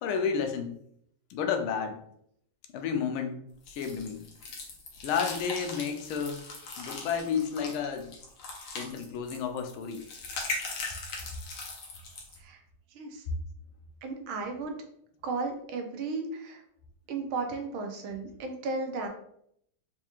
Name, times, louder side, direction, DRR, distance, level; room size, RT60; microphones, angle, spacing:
voice 1, 0.0-0.7 1.3-2.0 2.7-4.3 5.0-6.4 6.8-8.1 8.7-10.1, left 6 dB, 85° left, 5 dB, 1.5 m, -31 dB
sound 1, 3.7-12.4, left 3 dB, 70° left, 1.5 m, -40 dB
voice 2, 12.9-13.2 14.0-14.7 15.2-16.6 17.1-19.1, right 3 dB, 85° right, 4 dB, 1.5 m, -34 dB
4.4 x 2.4 x 2.9 m, 0.70 s
omnidirectional pair, 2.3 m